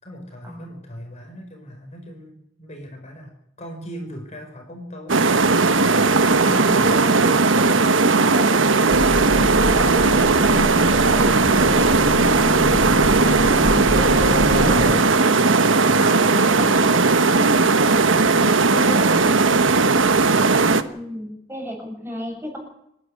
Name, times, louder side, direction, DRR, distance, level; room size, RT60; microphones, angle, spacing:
voice 1, 0.0-5.3, equal, 35° left, 2 dB, 5.2 m, -39 dB
sound 1, 5.1-20.8, right 3 dB, 75° right, 1.3 m, -17 dB
voice 2, 6.3-13.0 13.3-14.2 14.5-15.6 16.0-19.1 20.6-22.6, equal, 10° right, 1 dB, 7.5 m, -34 dB
sound 2, 8.9-15.0, equal, 15° left, 2.0 m, -26 dB
27.5 x 12.0 x 9.8 m, 0.78 s
head